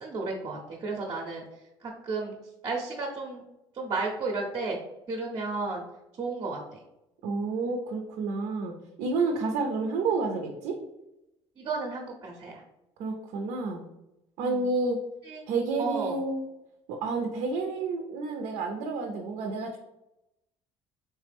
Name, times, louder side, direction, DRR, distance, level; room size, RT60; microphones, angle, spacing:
voice 1, 0.0-1.4 1.8-2.4 2.6-3.4 3.7-4.8 5.1-5.8 6.2-6.6 9.4-9.5 11.6-12.6 14.4-14.7 15.2-15.4 15.8-16.2, right 3 dB, 40° right, -1 dB, 0.8 m, -33 dB
voice 2, 7.2-10.8 13.0-13.8 14.4-15.0 15.5-16.4 16.9-19.8, right 3 dB, 75° right, 2 dB, 0.6 m, -30 dB
3.3 x 3.2 x 3.4 m, 0.90 s
supercardioid pair, 85°, 12 cm